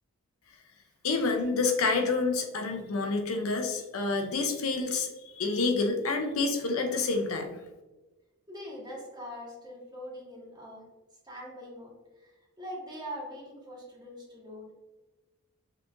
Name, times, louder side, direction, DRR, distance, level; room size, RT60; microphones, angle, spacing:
voice 1, 1.0-7.6, left 3 dB, 65° left, 4 dB, 0.6 m, -28 dB
voice 2, 8.5-10.8 11.2-11.9 12.2-12.3 12.6-14.7, equal, 20° right, -4 dB, 1.4 m, -42 dB
5.6 x 3.6 x 2.6 m, 1.1 s
head